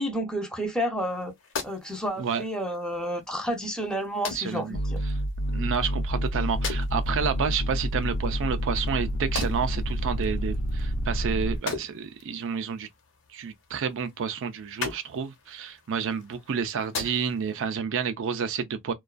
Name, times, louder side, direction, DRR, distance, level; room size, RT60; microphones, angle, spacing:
voice 1, 0.0-1.3 1.6-5.0, equal, 5° left, 0.5 m, -30 dB
sound 1, 1.0-17.7, left 4 dB, 60° left, 0.9 m, -41 dB
voice 2, 4.3-4.8 5.1-5.2 5.5-12.9 13.3-18.9, right 6 dB, 60° right, 0.4 m, -30 dB
sound 2, 4.7-11.6, equal, 85° left, 0.5 m, -29 dB
2.4 x 2.3 x 2.2 m
head